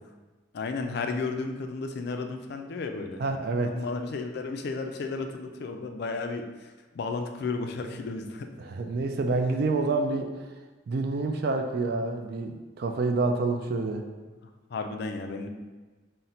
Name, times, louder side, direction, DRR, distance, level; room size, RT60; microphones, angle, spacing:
voice 1, 0.5-3.2 3.7-8.5 14.7-15.5, left 4 dB, 55° left, 5 dB, 0.3 m, -33 dB
voice 2, 3.2-3.7 8.6-10.3 10.9-14.1, right 3 dB, 50° right, 5 dB, 0.3 m, -28 dB
3.9 x 2.1 x 4.2 m, 1.3 s
head